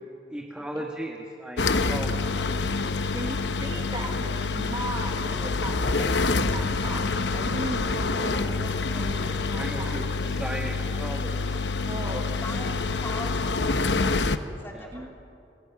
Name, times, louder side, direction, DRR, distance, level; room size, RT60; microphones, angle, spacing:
voice 1, 0.3-2.5 9.3-11.6 14.7-14.9, right 1 dB, 5° right, 1 dB, 1.5 m, -36 dB
sound 1, 1.6-14.4, left 3 dB, 80° left, 0.9 m, -27 dB
voice 2, 3.1-9.9 11.9-12.4 14.9-15.1, right 1 dB, 25° right, 2 dB, 1.5 m, -37 dB
voice 3, 12.4-13.9 14.6-15.1, left 1 dB, 15° left, 0 dB, 3.3 m, -41 dB
28.5 x 21.0 x 6.0 m, 2.6 s
head